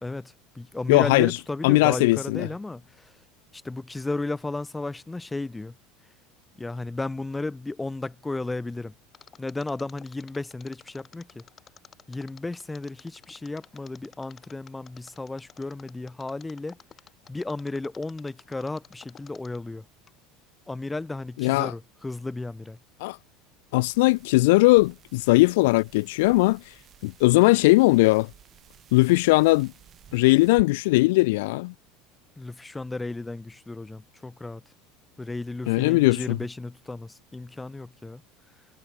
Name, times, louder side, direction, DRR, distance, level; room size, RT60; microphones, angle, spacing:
voice 1, 0.0-3.1 3.5-5.7 6.6-8.9 9.4-11.4 12.1-16.8 17.3-19.8 20.7-22.8 32.4-34.6 35.2-38.2, left 2 dB, 10° left, 0.7 m, -34 dB
voice 2, 0.9-1.4 1.6-2.5 21.4-21.7 23.0-23.2 23.7-26.6 27.0-28.3 28.9-29.7 30.1-31.7 35.7-36.4, left 22 dB, 75° left, 0.3 m, -19 dB
Mechanisms, 9.1-19.7 20.1-20.2, left 7 dB, 35° left, 3.8 m, -51 dB
sound 1, 23.8-30.6, right 10 dB, 40° right, 2.1 m, -53 dB
hypercardioid pair, 90°, 0 cm